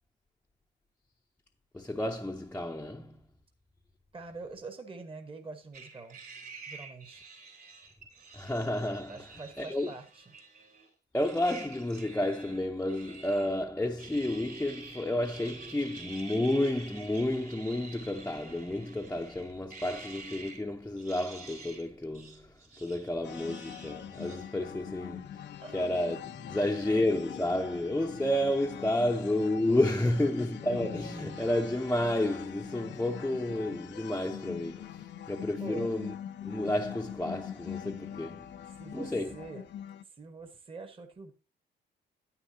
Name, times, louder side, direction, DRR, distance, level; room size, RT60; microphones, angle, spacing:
voice 1, 1.7-3.2 8.3-9.3 9.6-9.9 11.1-22.5 22.8-36.1 36.4-38.5 38.9-39.3, left 1 dB, 10° left, 0.6 m, -31 dB
voice 2, 4.1-6.2 6.7-7.2 9.1-10.2 25.6-25.8 35.6-35.9 38.8-39.6 40.0-41.3, right 3 dB, 25° right, 1.2 m, -44 dB
sound 1, 5.7-10.9 11.2-13.7 14.0-20.7 21.0-21.9 22.1-24.5, right 4 dB, 50° right, 3.3 m, -49 dB
sound 2, 23.2-40.0, left 10 dB, 65° left, 0.6 m, -43 dB
9.8 x 9.0 x 2.7 m
cardioid pair, 90°, 20 cm